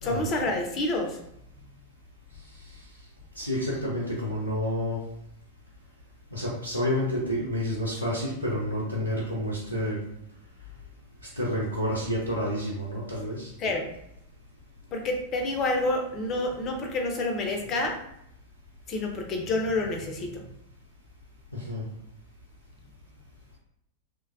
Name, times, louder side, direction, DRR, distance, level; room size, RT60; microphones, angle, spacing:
voice 1, 0.0-1.2 13.6-13.9 14.9-18.0 18.9-20.5, left 2 dB, 30° left, 3 dB, 0.5 m, -28 dB
voice 2, 3.4-5.0 6.3-10.0 11.3-13.5 21.5-21.8, equal, 85° left, -5 dB, 0.5 m, -29 dB
3.1 x 2.2 x 2.4 m, 0.77 s
figure-of-eight pair, 90°, 0 cm